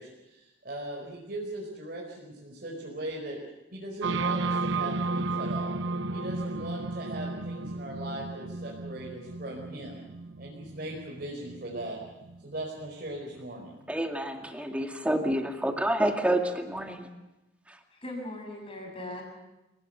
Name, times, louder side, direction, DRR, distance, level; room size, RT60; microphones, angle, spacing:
voice 1, 0.0-3.4 3.7-5.7 6.1-10.0 10.4-12.0 12.4-13.7, right 1 dB, 50° right, -4 dB, 5.2 m, -39 dB
sound 1, 4.0-13.6, right 3 dB, 75° right, 0.9 m, -33 dB
voice 2, 13.9-17.1 17.7-17.8, right 1 dB, 5° right, 3 dB, 2.2 m, -28 dB
voice 3, 17.9-19.2, left 1 dB, 30° left, 0 dB, 7.4 m, -39 dB
29.0 x 18.5 x 6.9 m, 0.98 s
head